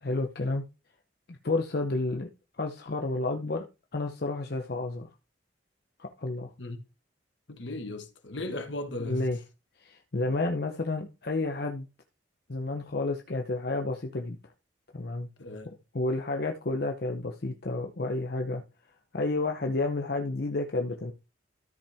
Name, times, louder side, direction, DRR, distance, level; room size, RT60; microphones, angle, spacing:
voice 1, 0.0-0.6 1.3-2.3 2.6-3.7 3.9-5.1 6.0-6.5 9.0-9.4 9.8-11.9 12.5-14.4 14.9-15.3 15.9-18.6 19.1-21.1, left 2 dB, 55° left, 0.7 m, -30 dB
voice 2, 7.5-9.3 15.4-15.7, left 2 dB, 70° left, 1.4 m, -36 dB
13.0 x 5.6 x 3.5 m
head